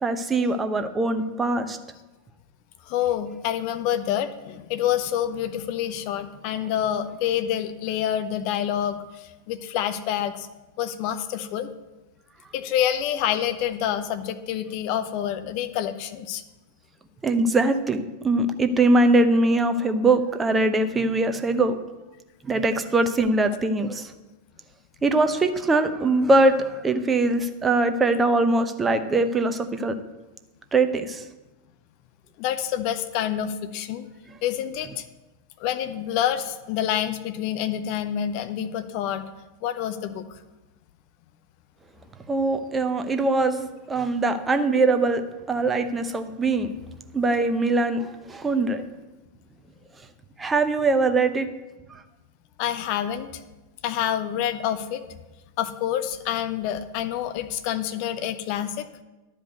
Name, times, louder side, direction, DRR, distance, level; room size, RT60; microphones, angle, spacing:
voice 1, 0.0-1.8 17.2-21.7 22.4-24.1 25.0-29.9 30.7-31.2 42.3-45.2 45.5-46.7 47.1-48.8 50.4-51.5 51.9-52.0, right 2 dB, 15° right, 8 dB, 0.8 m, -22 dB
voice 2, 2.9-10.5 10.8-11.7 12.5-16.4 32.4-34.1 34.4-35.0 35.6-39.2 39.6-40.2 52.6-53.4 53.8-55.0 55.6-58.9, left 10 dB, 45° left, 10 dB, 0.8 m, -27 dB
11.0 x 5.0 x 8.0 m, 1.1 s
figure-of-eight pair, 90°, 0 cm